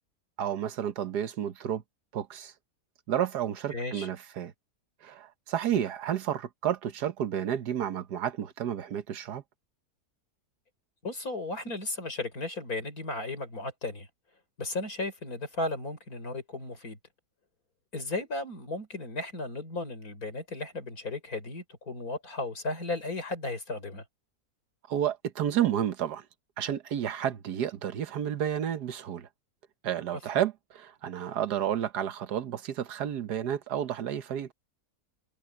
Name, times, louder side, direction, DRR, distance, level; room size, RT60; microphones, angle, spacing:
voice 1, 0.4-1.8 2.1-2.5 3.1-4.5 5.0-9.4 24.9-26.2 26.6-29.3 29.8-34.5, right 10 dB, 80° right, 1.6 m, -31 dB
voice 2, 3.7-4.1 11.0-14.1 14.6-17.0 17.9-24.0 30.3-30.4, left 2 dB, 65° left, 5.6 m, -35 dB
omnidirectional pair, 1.7 m